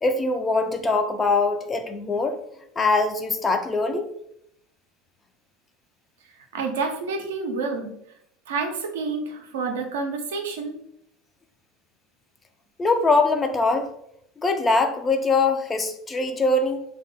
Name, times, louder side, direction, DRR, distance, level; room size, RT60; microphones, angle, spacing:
voice 1, 0.0-2.4 2.8-4.1 12.8-13.9 14.4-16.8, left 3 dB, 25° left, 7 dB, 0.4 m, -22 dB
voice 2, 6.5-7.9 8.5-10.8, right 4 dB, 75° right, 3 dB, 0.4 m, -28 dB
3.1 x 2.2 x 2.7 m, 0.74 s
hypercardioid pair, 75°, 0 cm